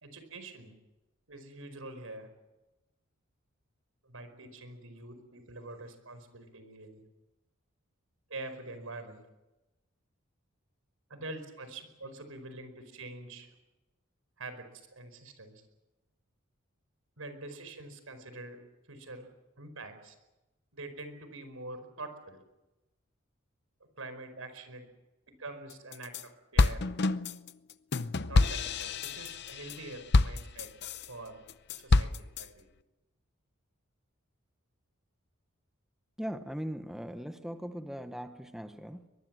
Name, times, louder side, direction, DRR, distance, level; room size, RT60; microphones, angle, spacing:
voice 1, 0.0-0.7 1.3-2.3 4.0-7.0 8.3-9.2 11.1-13.5 14.4-15.6 17.2-18.6 18.9-19.3 19.6-20.1 20.7-22.4 24.0-24.9 25.3-26.9 28.3-30.7 31.1-31.4 31.7-32.7, right 2 dB, 85° right, 9 dB, 4.9 m, -45 dB
sound 1, 25.7-26.2 26.6-31.1 31.5-32.5, left 3 dB, 55° left, 0.7 m, -27 dB
voice 2, 36.2-39.1, equal, ahead, 8 dB, 1.1 m, -39 dB
23.0 x 22.5 x 7.6 m, 1.0 s
head